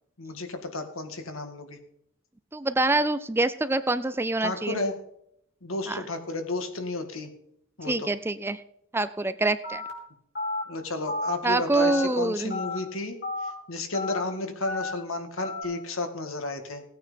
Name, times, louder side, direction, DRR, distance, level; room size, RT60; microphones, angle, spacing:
voice 1, 0.2-1.8 4.4-5.0 5.6-7.3 7.8-8.1 10.7-13.2 13.4-16.8, left 2 dB, 70° left, 7 dB, 2.1 m, -32 dB
voice 2, 2.5-4.8 5.9-6.0 7.9-8.6 8.9-9.8 11.4-12.6, right 2 dB, 10° right, 13 dB, 0.4 m, -25 dB
Telephone, 9.6-9.9 10.3-10.6 11.1-11.3 11.8-12.1 12.5-12.8 13.2-13.5 13.9-14.2 14.7-14.9 15.4-15.6, left 3 dB, 50° left, 4.9 m, -31 dB
17.0 x 9.3 x 5.2 m, 0.75 s
head